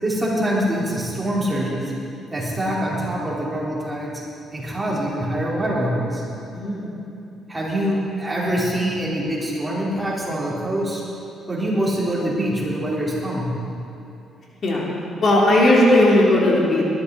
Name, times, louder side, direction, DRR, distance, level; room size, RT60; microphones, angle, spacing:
voice 1, 0.0-1.9 2.3-4.2 4.5-6.2 7.5-11.0 11.5-13.5, right 1 dB, 15° right, -6 dB, 4.4 m, -24 dB
voice 2, 6.5-6.8 14.6-14.8 15.2-16.9, left 1 dB, 50° left, -4 dB, 3.5 m, -16 dB
19.5 x 13.0 x 4.3 m, 2.8 s
cardioid pair, 90°, 0 cm